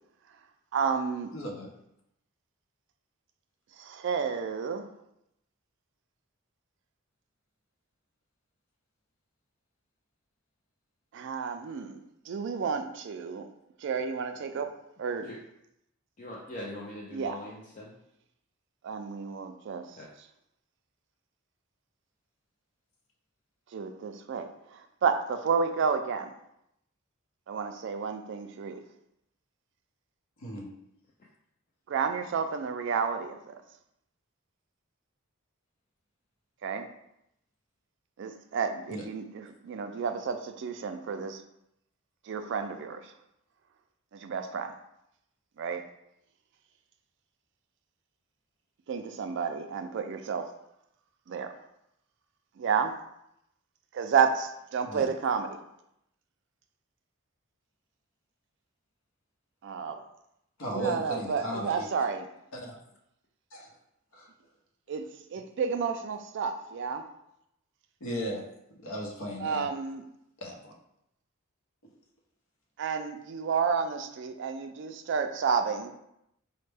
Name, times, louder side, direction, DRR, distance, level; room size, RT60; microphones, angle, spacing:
voice 1, 0.7-1.3 3.8-4.9 11.1-13.5 13.8-14.7 15.0-15.3 17.1-17.4 18.8-20.0 23.7-26.3 27.5-28.8 31.9-33.5 36.6-36.8 38.2-41.4 42.3-43.1 44.1-44.7 45.6-45.8 48.9-50.5 51.3-51.5 52.6-52.9 53.9-55.6 59.6-60.0 60.7-62.3 64.9-65.0 65.3-67.0 69.4-70.0 72.8-75.9, right 6 dB, 55° right, 7 dB, 0.3 m, -31 dB
voice 2, 1.3-1.7 30.4-30.7 38.9-39.0 54.8-55.1 60.6-61.8 62.5-62.7 63.5-63.7 64.1-64.3 68.0-68.4 68.8-69.7 70.4-70.7, equal, 65° left, 0 dB, 0.8 m, -36 dB
voice 3, 16.2-17.9 19.9-20.1, left 1 dB, 35° left, -4 dB, 0.4 m, -42 dB
4.2 x 2.1 x 3.3 m, 0.80 s
head